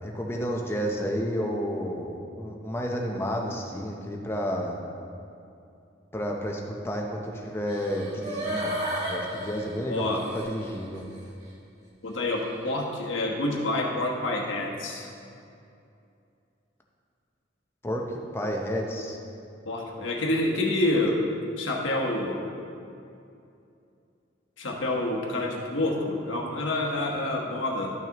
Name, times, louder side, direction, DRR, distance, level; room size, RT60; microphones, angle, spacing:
voice 1, 0.0-4.8 6.1-8.7 9.1-10.1 10.3-11.0 17.8-18.0 18.3-19.2, equal, 15° left, 0 dB, 0.7 m, -31 dB
sound 1, 7.7-10.7 11.2-11.3, right 1 dB, 35° right, 1.5 m, -33 dB
voice 2, 9.9-10.3 12.0-15.1 19.6-21.2 21.6-22.4 24.6-27.9, left 1 dB, 85° left, -1 dB, 1.2 m, -28 dB
12.5 x 6.1 x 3.0 m, 2.6 s
head